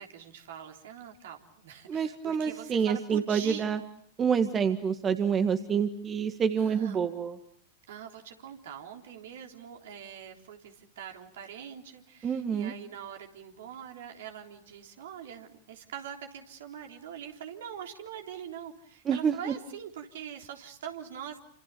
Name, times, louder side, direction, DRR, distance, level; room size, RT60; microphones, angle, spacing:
voice 1, 0.0-3.7 6.6-7.0 7.9-21.4, right 9 dB, 60° right, 4 dB, 3.6 m, -43 dB
voice 2, 1.9-3.8 4.2-7.4 12.2-12.7 19.1-19.5, right 7 dB, 25° right, 9 dB, 1.8 m, -27 dB
29.5 x 27.0 x 6.9 m, 0.62 s
figure-of-eight pair, 95°, 0 cm